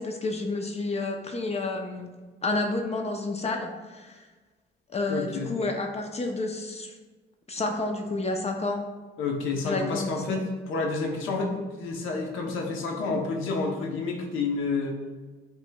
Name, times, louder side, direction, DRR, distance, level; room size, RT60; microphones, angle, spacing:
voice 1, 0.0-2.1 2.4-4.3 4.9-6.9 7.5-8.9 9.6-10.4, left 2 dB, 30° left, 3 dB, 0.6 m, -30 dB
voice 2, 5.1-5.5 9.2-15.0, left 3 dB, 85° left, 1 dB, 0.8 m, -29 dB
7.8 x 3.0 x 2.3 m, 1.3 s
cardioid pair, 90°, 20 cm